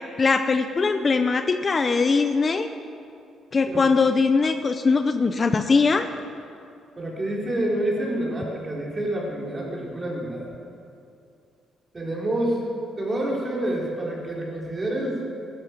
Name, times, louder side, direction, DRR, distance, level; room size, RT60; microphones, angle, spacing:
voice 1, 0.2-2.7 3.5-6.1, left 4 dB, 35° left, 8 dB, 0.6 m, -21 dB
voice 2, 7.0-10.5 11.9-12.6 13.0-15.2, right 1 dB, 30° right, -3 dB, 4.1 m, -28 dB
16.0 x 12.5 x 5.2 m, 2.5 s
cardioid pair, 90°, 0 cm